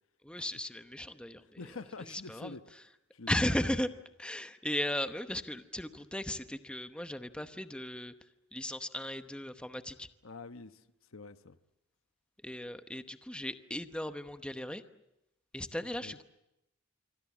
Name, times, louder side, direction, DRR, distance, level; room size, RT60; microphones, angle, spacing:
voice 1, 0.2-1.6 2.1-2.6 3.3-3.9 4.2-8.1 8.5-10.1 12.4-14.8 15.5-16.2, left 1 dB, 5° left, 0.9 m, -36 dB
voice 2, 1.6-2.6 3.1-3.4 10.2-10.8 11.1-11.6 15.8-16.2, left 3 dB, 70° left, 1.1 m, -46 dB
26.5 x 24.5 x 7.3 m
head